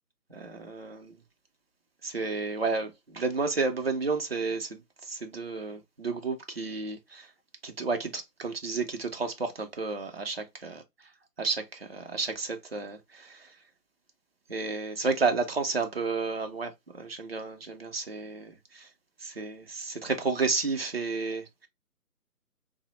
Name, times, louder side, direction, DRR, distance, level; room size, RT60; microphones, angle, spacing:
voice 1, 0.3-1.2 2.0-7.3 7.6-10.7 11.4-13.5 14.5-18.9 19.2-21.7, right 4 dB, 40° right, 0.5 m, -32 dB
3.7 x 2.0 x 3.0 m
figure-of-eight pair, 150°, 47 cm